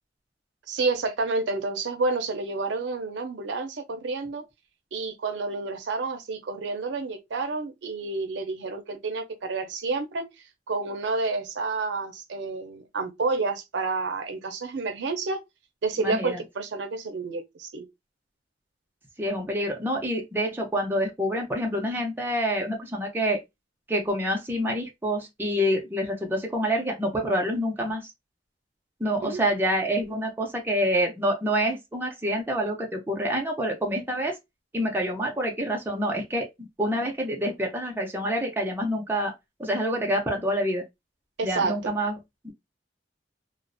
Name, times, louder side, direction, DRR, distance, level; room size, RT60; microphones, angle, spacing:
voice 1, 0.7-4.5 4.9-10.3 10.7-15.4 15.8-17.9 29.2-29.4 41.4-41.9, right 3 dB, 80° right, 0.5 m, -29 dB
voice 2, 16.0-16.4 19.2-23.4 23.9-28.1 29.0-34.4 34.7-39.3 39.6-40.8 41.4-42.2 42.4-42.5, equal, 10° right, 0.5 m, -27 dB
2.4 x 2.0 x 2.5 m
head